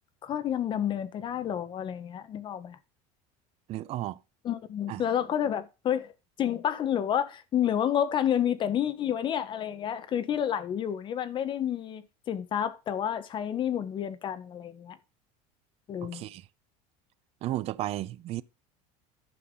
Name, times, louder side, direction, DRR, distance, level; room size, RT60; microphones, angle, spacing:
voice 1, 0.2-2.8 4.4-6.1 6.4-15.0 15.9-16.3, left 9 dB, 30° left, 1.2 m, -30 dB
voice 2, 3.7-4.2 4.9-5.0 16.1-16.5 17.4-18.4, right 15 dB, 40° right, 0.6 m, -33 dB
11.5 x 5.8 x 5.2 m
cardioid pair, 155°, 16 cm